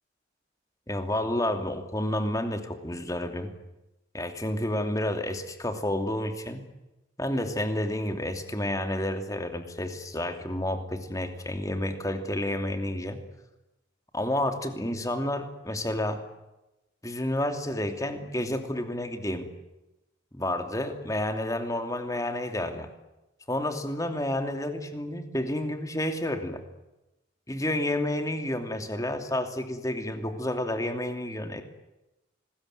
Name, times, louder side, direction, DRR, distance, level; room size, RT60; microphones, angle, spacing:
voice 1, 0.9-3.5 4.1-6.7 7.2-13.2 14.1-16.2 17.0-19.5 20.3-22.9 23.5-26.6 27.5-31.6, left 1 dB, 20° left, 6 dB, 2.8 m, -30 dB
26.5 x 20.5 x 9.3 m, 0.97 s
head